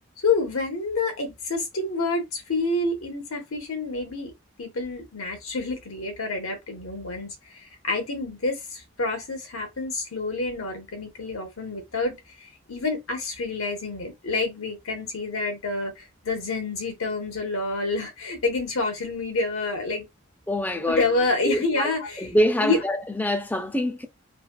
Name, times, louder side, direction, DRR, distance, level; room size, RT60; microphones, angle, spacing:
voice 1, 0.2-4.3 4.6-20.1 20.7-22.3 22.6-22.8, left 3 dB, 90° left, 1.1 m, -28 dB
voice 2, 20.5-21.0 21.4-21.9 22.2-24.1, left 1 dB, 10° left, 0.3 m, -25 dB
3.2 x 2.3 x 2.3 m
head